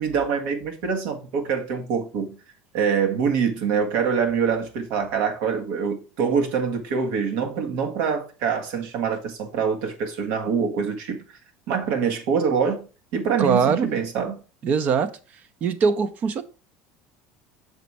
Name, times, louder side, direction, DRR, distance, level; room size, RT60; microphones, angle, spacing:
voice 1, 0.0-2.4 2.7-11.2 11.7-14.4, right 6 dB, 70° right, 1.5 m, -25 dB
voice 2, 13.4-13.9 14.6-15.1 15.6-16.4, right 6 dB, 45° right, 0.8 m, -21 dB
6.6 x 4.2 x 4.6 m
supercardioid pair, 110°, 4 cm